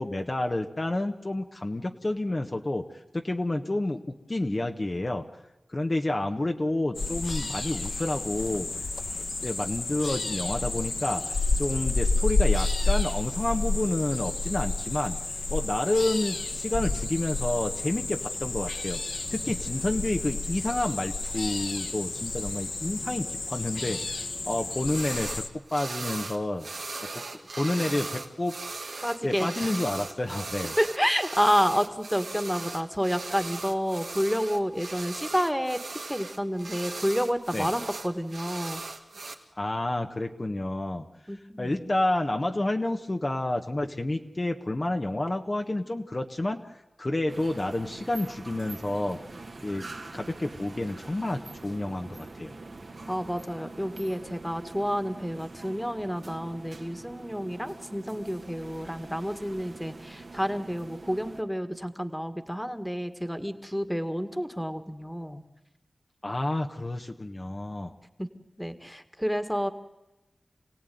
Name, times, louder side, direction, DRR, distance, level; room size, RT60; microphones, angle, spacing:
voice 1, 0.0-2.9 3.1-5.3 5.7-8.7 9.4-11.2 11.6-15.2 15.5-19.0 19.3-25.4 25.7-26.7 27.1-28.6 29.2-30.8 37.5-37.7 39.6-41.1 41.6-46.7 47.0-49.2 49.6-49.9 50.1-52.5 66.2-67.9, left 1 dB, 40° left, 4 dB, 1.3 m, -29 dB
sound 1, 6.9-25.5, left 3 dB, 70° left, 1.3 m, -30 dB
sound 2, 24.9-25.4 25.7-39.3, right 3 dB, 85° right, 2.4 m, -38 dB
voice 2, 29.0-29.7 30.8-35.8 36.1-38.8 41.3-41.9 53.1-65.4 68.2-68.3 68.6-69.7, equal, ahead, 9 dB, 1.9 m, -29 dB
sound 3, 47.3-61.4, right 3 dB, 70° right, 2.2 m, -44 dB
27.0 x 17.0 x 9.4 m, 1.0 s
cardioid pair, 45°, 0 cm